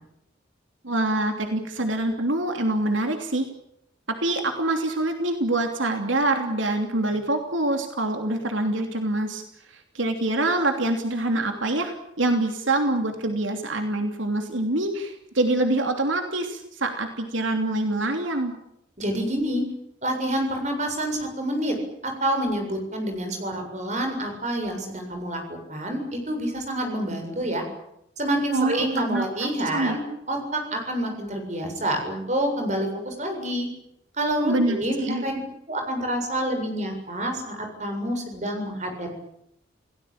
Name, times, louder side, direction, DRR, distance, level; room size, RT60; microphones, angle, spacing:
voice 1, 0.8-3.5 4.1-9.4 9.7-18.5 28.5-29.2 29.7-30.0 34.4-35.2, right 2 dB, 80° right, 5 dB, 3.0 m, -25 dB
voice 2, 19.0-19.7 20.0-21.8 22.0-27.6 28.2-30.0 30.3-33.7 34.2-35.4 35.7-39.1, right 1 dB, 35° right, 4 dB, 7.4 m, -27 dB
29.5 x 18.0 x 8.9 m, 0.78 s
head